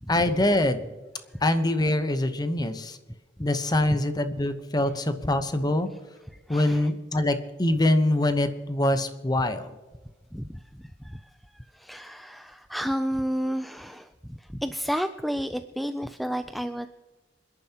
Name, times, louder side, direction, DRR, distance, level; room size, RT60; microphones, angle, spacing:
voice 1, 0.1-0.9 1.4-3.0 3.4-5.9 6.5-9.7, left 1 dB, 20° left, 9 dB, 0.9 m, -24 dB
voice 2, 5.9-6.9 10.3-16.9, equal, ahead, 9 dB, 0.4 m, -32 dB
27.5 x 10.5 x 2.9 m, 1.3 s
head